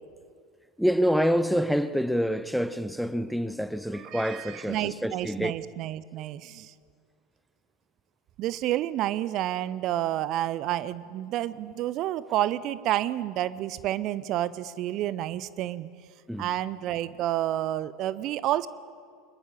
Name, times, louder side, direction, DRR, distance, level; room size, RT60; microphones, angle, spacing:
voice 1, 0.8-5.5 16.3-16.5, equal, ahead, 0.8 m, -27 dB
voice 2, 4.1-6.7 8.4-15.9 16.4-18.7, right 13 dB, 45° right, 0.6 m, -29 dB
23.5 x 21.0 x 7.5 m
figure-of-eight pair, 75°, 0 cm